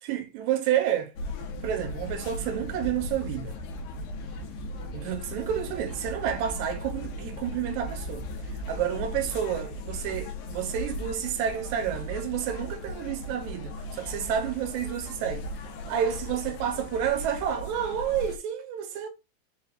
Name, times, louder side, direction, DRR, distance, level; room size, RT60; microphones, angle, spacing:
voice 1, 0.0-1.1 1.5-3.6 4.9-8.3 8.7-15.5 15.9-19.1, right 9 dB, 85° right, 2.1 m, -30 dB
sound 1, 1.2-18.4, left 1 dB, 85° left, 1.9 m, -37 dB
5.0 x 2.3 x 3.4 m
omnidirectional pair, 3.4 m